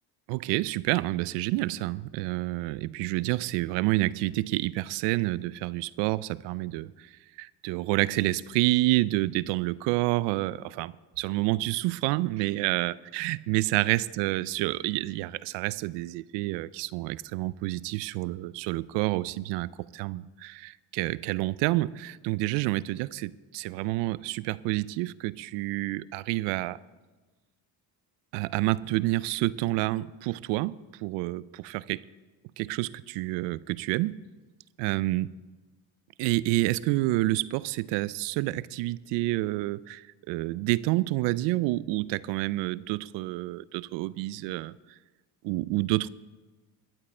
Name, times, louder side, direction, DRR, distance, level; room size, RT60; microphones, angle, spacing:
voice 1, 0.3-7.1 7.4-26.8 28.3-32.0 32.6-34.2 34.8-35.3 36.2-44.7 45.4-46.1, right 19 dB, 85° right, 0.5 m, -28 dB
13.5 x 11.0 x 4.4 m
cardioid pair, 105°, 42 cm